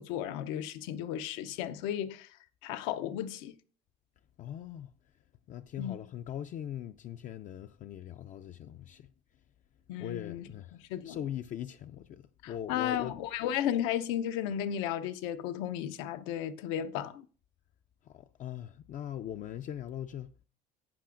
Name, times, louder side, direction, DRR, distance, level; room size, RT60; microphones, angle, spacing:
voice 1, 0.0-2.3 2.6-3.6 5.8-6.0 9.9-10.5 10.9-11.2 12.4-17.3, left 10 dB, 85° left, 0.7 m, -34 dB
voice 2, 4.4-4.9 5.5-9.1 10.0-13.1 18.0-20.3, left 10 dB, 40° left, 0.4 m, -41 dB
11.5 x 8.3 x 2.5 m
cardioid pair, 120°, 20 cm